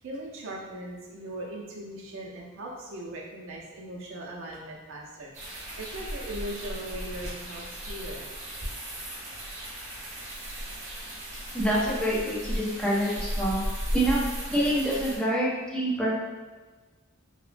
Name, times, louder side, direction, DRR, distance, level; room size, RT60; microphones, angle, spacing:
voice 1, 0.0-8.3 14.6-14.7, right 1 dB, 65° right, -2 dB, 0.5 m, -39 dB
sound 1, 5.3-15.2, equal, 35° right, 0.7 m, -36 dB
voice 2, 11.5-13.6 13.9-14.2 14.5-16.1, right 1 dB, 5° left, -6 dB, 0.5 m, -26 dB
2.9 x 2.1 x 2.4 m, 1.3 s
head